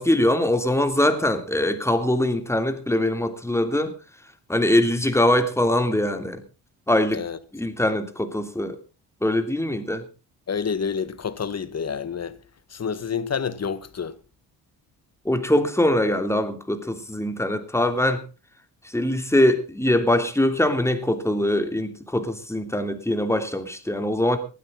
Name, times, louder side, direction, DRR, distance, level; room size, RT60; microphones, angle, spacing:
voice 1, 0.0-3.9 4.5-6.4 6.9-7.2 7.5-8.8 9.2-10.0 15.2-18.2 18.8-24.4, left 1 dB, 5° left, 3.0 m, -22 dB
voice 2, 10.5-12.4 12.7-14.2, left 6 dB, 35° left, 1.7 m, -28 dB
19.0 x 12.5 x 4.0 m
cardioid pair, 80°, 41 cm